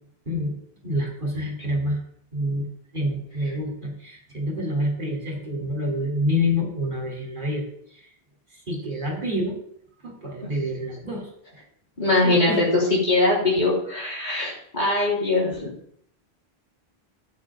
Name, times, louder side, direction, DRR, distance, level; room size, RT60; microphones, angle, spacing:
voice 1, 0.8-2.0 2.3-8.0 8.5-9.6 10.0-11.3 12.2-12.6, left 1 dB, 50° right, -1 dB, 3.6 m, -27 dB
voice 2, 12.0-12.7 13.0-15.7, left 2 dB, 45° left, -6 dB, 4.4 m, -22 dB
15.5 x 8.8 x 3.7 m, 0.67 s
omnidirectional pair, 1.1 m